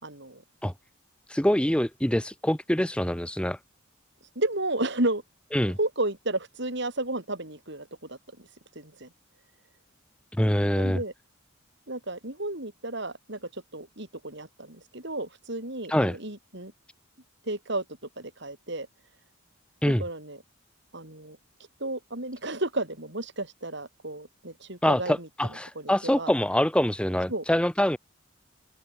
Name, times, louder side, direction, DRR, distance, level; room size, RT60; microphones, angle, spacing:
voice 1, 0.0-0.4 4.4-5.2 5.8-8.5 8.8-9.1 10.8-11.1 11.9-16.7 17.5-17.8 18.2-18.9 19.9-20.4 20.9-21.4 21.8-25.3 25.8-26.3 27.3-27.4, right 2 dB, 60° right, 6.8 m, -32 dB
voice 2, 1.3-3.6 5.5-5.8 10.4-11.0 15.9-16.2 19.8-20.0 24.8-28.0, equal, 5° left, 1.0 m, -25 dB
open air
head